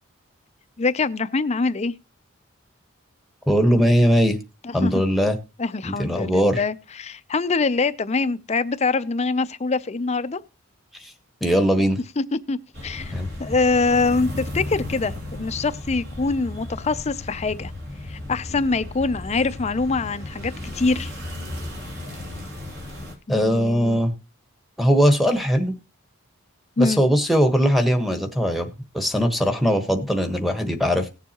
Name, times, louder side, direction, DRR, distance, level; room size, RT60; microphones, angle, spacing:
voice 1, 0.8-1.9 4.6-5.1 5.6-10.4 12.2-12.6 12.8-13.1 13.4-17.7 18.1-21.1 23.3-24.0 26.8-27.0, left 3 dB, 30° left, 0.5 m, -24 dB
voice 2, 3.5-4.4 4.7-5.4 5.8-6.6 11.0-11.1 11.4-12.0 13.1-13.3 23.3-24.1 24.8-25.8 26.8-28.7 28.9-31.1, equal, ahead, 1.2 m, -20 dB
sound 1, 12.7-23.1, left 1 dB, 60° right, 2.8 m, -34 dB
18.0 x 7.1 x 2.9 m
head